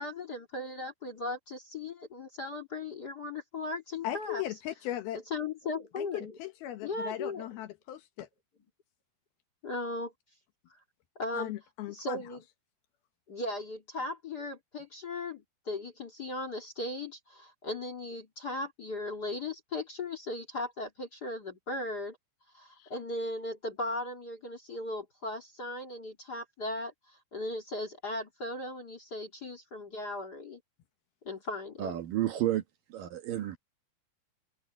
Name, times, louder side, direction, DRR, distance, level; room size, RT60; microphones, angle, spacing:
voice 1, 0.0-4.4 5.3-6.4 6.8-7.5 9.6-10.1 11.2-11.5 11.9-12.4 13.3-22.2 22.5-30.6 31.2-31.9, left 2 dB, 35° left, 1.8 m, -37 dB
voice 2, 4.0-5.2 6.0-8.3 11.4-12.2 22.8-22.9, left 13 dB, 70° left, 2.8 m, -38 dB
voice 3, 31.8-32.6 32.9-33.6, right 12 dB, 65° right, 2.7 m, -31 dB
omnidirectional pair, 4.9 m